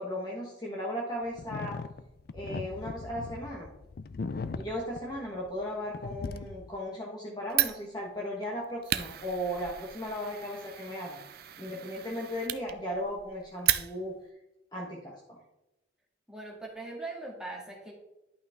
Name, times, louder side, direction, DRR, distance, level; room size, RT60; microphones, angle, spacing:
voice 1, 0.0-1.7 2.3-3.7 4.6-11.2 11.6-14.2 14.7-15.4, equal, 20° left, -3 dB, 1.2 m, -36 dB
sound 1, 1.4-5.7 5.9-6.7, left 4 dB, 50° left, 0.4 m, -39 dB
Fire, 7.5-14.3, right 13 dB, 50° right, 0.4 m, -34 dB
voice 2, 16.3-17.9, right 2 dB, 5° right, -3 dB, 2.0 m, -40 dB
11.0 x 5.6 x 3.6 m, 0.94 s
head